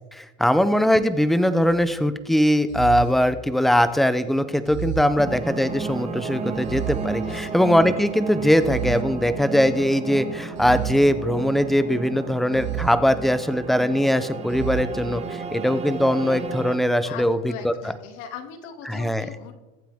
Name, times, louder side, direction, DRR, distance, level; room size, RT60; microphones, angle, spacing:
voice 1, 0.1-17.4 17.6-17.7 18.9-19.3, equal, ahead, 12 dB, 0.5 m, -21 dB
sound 1, 1.6-2.0 2.7-4.0 4.7-5.9 6.6-7.9 8.6-9.9 10.6-11.9 12.5-13.8 14.5-14.8, right 10 dB, 35° right, 0.8 m, -33 dB
voice 2, 4.7-5.0 7.2-7.6 17.0-19.6, left 7 dB, 55° left, 5 dB, 2.4 m, -40 dB
sound 2, 5.2-16.8, right 5 dB, 20° right, 1.3 m, -33 dB
22.5 x 9.1 x 3.6 m, 1.1 s
supercardioid pair, 145°, 34 cm